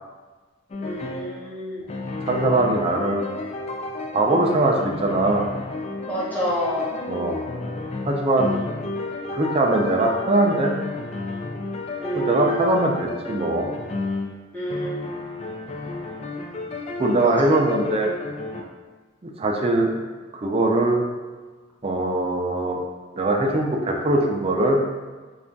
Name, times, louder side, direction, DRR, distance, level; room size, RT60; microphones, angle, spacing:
sound 1, 0.7-1.4 1.9-14.4 14.7-18.6, left 3 dB, 35° left, 0.3 m, -32 dB
voice 1, 0.8-2.1 6.1-7.0 12.0-12.8 13.0-13.1 14.5-15.1 17.2-17.5, equal, 10° left, -8 dB, 1.0 m, -29 dB
voice 2, 2.2-3.2 4.1-5.5 7.1-7.4 8.1-8.5 9.3-10.7 12.1-13.7 17.0-18.1 19.2-19.9 20.3-21.0 21.8-22.8 23.2-24.8, right 2 dB, 30° right, 0 dB, 0.4 m, -21 dB
3.4 x 2.4 x 3.8 m, 1.3 s
head